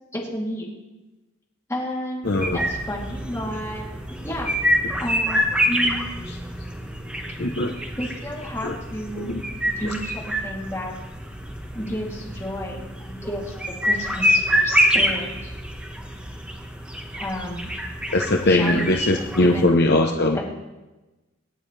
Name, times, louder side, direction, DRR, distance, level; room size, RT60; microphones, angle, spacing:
voice 1, 0.1-0.7 1.7-3.8 4.2-4.5 5.0-6.1 8.0-9.4 9.8-10.9 11.7-13.5 13.8-15.5 17.2-17.8 18.5-18.9 19.4-19.7 20.3-20.4, equal, 15° left, -4 dB, 3.0 m, -31 dB
voice 2, 2.2-2.6 6.3-6.4 7.4-7.7 8.6-8.8 9.2-9.4 18.1-20.4, left 2 dB, 50° left, 2 dB, 0.9 m, -20 dB
sound 1, 2.2-19.7, equal, 5° right, 1.4 m, -26 dB
26.5 x 9.2 x 3.4 m, 1.1 s
head